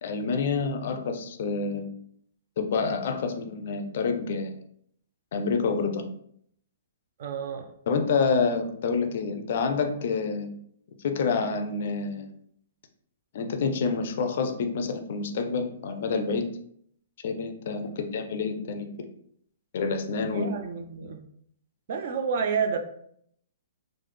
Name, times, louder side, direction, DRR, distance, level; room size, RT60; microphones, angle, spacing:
voice 1, 0.0-2.0 2.6-4.5 5.3-6.1 7.9-10.5 11.0-12.3 13.3-16.5 17.2-18.9 19.7-20.5, left 4 dB, 50° left, 6 dB, 0.4 m, -28 dB
voice 2, 7.2-7.7 17.8-18.1 20.2-21.2 21.9-22.8, right 6 dB, 45° right, 5 dB, 0.4 m, -30 dB
3.2 x 2.0 x 3.3 m, 0.67 s
hypercardioid pair, 165°, 0 cm